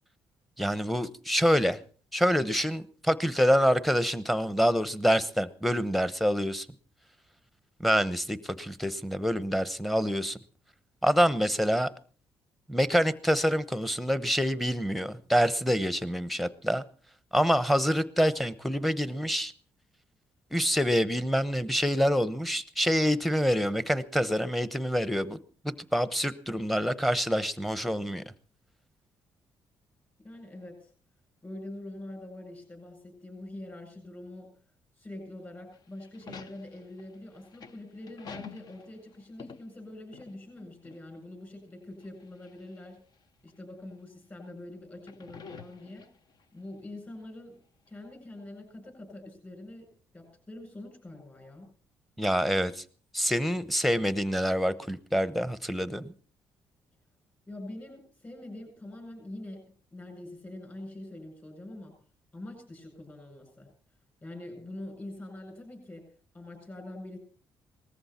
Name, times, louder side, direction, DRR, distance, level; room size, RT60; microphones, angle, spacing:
voice 1, 0.6-1.8 2.1-6.7 7.8-10.4 11.0-11.9 12.7-16.8 17.3-19.5 20.5-25.4 25.6-28.2 52.2-52.8 53.1-56.1, equal, ahead, 0.9 m, -26 dB
voice 2, 30.2-30.9 31.4-34.5 35.0-43.0 43.4-46.0 46.5-47.6 47.9-51.7 57.5-59.6 59.9-62.0 62.3-63.7 64.2-67.2, left 1 dB, 25° left, 7.9 m, -44 dB
sound 1, 35.7-40.6 40.8-41.0 42.0-42.8 43.5-43.6 44.9-46.4, left 6 dB, 60° left, 1.0 m, -48 dB
19.5 x 14.0 x 4.3 m
cardioid pair, 100°, 8 cm